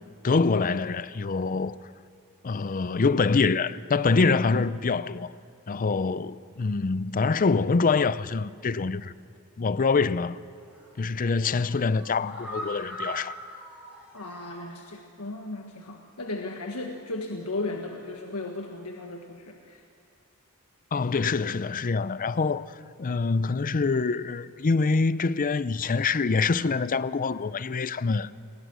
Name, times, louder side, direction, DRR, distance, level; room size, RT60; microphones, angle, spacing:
voice 1, 0.0-1.8 2.4-5.3 5.7-9.1 9.6-10.4 11.0-13.3 20.9-22.7 23.0-28.3, left 4 dB, 40° left, 0.5 m, -25 dB
sound 1, 10.6-10.9 11.3-14.7 15.0-15.1 15.5-15.6, equal, 5° right, 6.4 m, -41 dB
voice 2, 14.1-19.8, left 2 dB, 85° left, 1.6 m, -35 dB
28.0 x 21.0 x 6.3 m
head